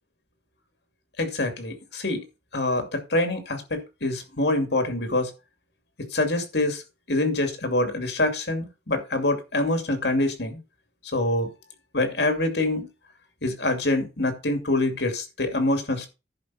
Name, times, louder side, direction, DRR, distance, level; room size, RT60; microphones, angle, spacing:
voice 1, 1.2-2.2 2.5-5.3 6.0-6.8 7.1-10.6 11.1-11.5 11.9-12.9 13.4-16.1, left 2 dB, 75° left, 7 dB, 2.5 m, -25 dB
10.5 x 5.1 x 5.6 m, 0.28 s
head